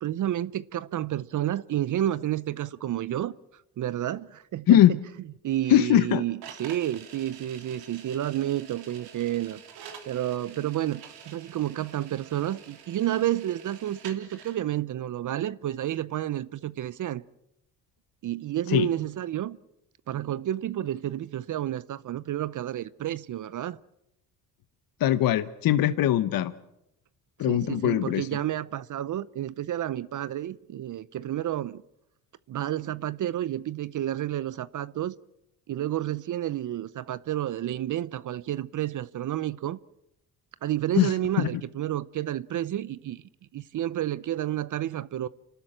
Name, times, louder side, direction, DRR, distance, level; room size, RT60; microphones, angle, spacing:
voice 1, 0.0-3.3 3.8-5.0 5.4-9.6 10.1-17.2 18.2-19.6 20.1-23.8 27.4-31.8 32.5-35.1 35.7-39.8 40.6-43.2 43.5-45.3, right 12 dB, 55° right, 0.7 m, -30 dB
voice 2, 5.7-6.2 18.7-18.9 25.0-26.5 27.4-28.3 41.0-41.1 41.4-41.5, left 12 dB, 65° left, 1.0 m, -21 dB
sound 1, 6.4-14.6, right 8 dB, 80° right, 3.1 m, -47 dB
28.0 x 13.0 x 8.9 m
supercardioid pair, 75°, 37 cm